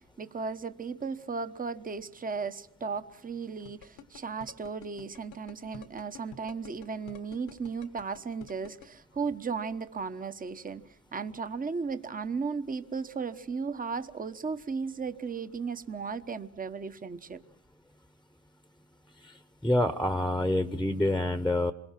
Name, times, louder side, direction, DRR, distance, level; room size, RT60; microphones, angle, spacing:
voice 1, 0.0-10.8 11.1-17.4, right 5 dB, 30° right, 11 dB, 1.1 m, -35 dB
sound 1, 3.7-8.9, left 8 dB, 85° left, 1.4 m, -48 dB
voice 2, 19.6-21.7, left 1 dB, 5° left, 11 dB, 1.0 m, -27 dB
27.0 x 22.0 x 5.9 m, 0.75 s
cardioid pair, 90°, 30 cm